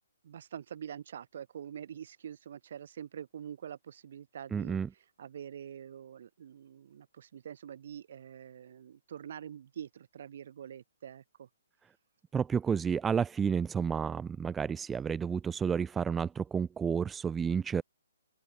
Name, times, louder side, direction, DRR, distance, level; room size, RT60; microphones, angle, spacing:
voice 1, 0.2-4.8 5.2-11.5, right 9 dB, 60° right, 2.9 m, -45 dB
voice 2, 4.5-4.9 12.3-17.8, right 6 dB, 10° right, 0.6 m, -31 dB
open air
hypercardioid pair, 135°, 0 cm